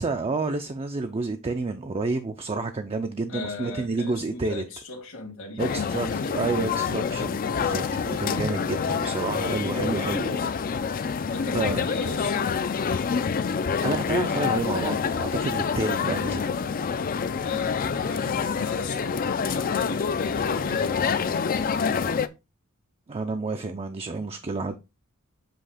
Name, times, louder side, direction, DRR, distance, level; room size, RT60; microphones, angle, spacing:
voice 1, 0.0-4.6 5.6-6.1 6.3-11.1 11.5-11.8 13.8-16.5 23.1-24.8, right 3 dB, 25° right, 0.4 m, -30 dB
voice 2, 3.3-6.4 8.8-9.0 11.3-12.3 17.4-22.1, left 4 dB, 65° left, 1.6 m, -36 dB
sound 1, 5.6-22.3, left 6 dB, 40° left, 0.4 m, -27 dB
7.7 x 2.8 x 4.9 m
head